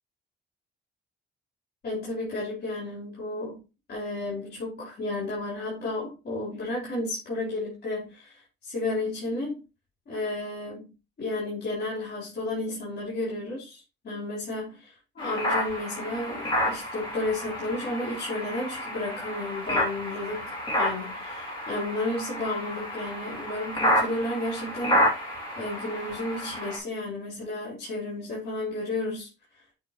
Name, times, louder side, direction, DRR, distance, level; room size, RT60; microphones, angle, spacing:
voice 1, 1.8-3.6 3.9-9.6 10.1-10.9 11.2-25.1 25.6-29.3 29.5-29.6, left 2 dB, 55° left, 3.8 m, -32 dB
sound 1, 15.2-26.8, equal, 25° left, 4.2 m, -30 dB
7.8 x 4.7 x 3.0 m
cardioid pair, 90°, 20 cm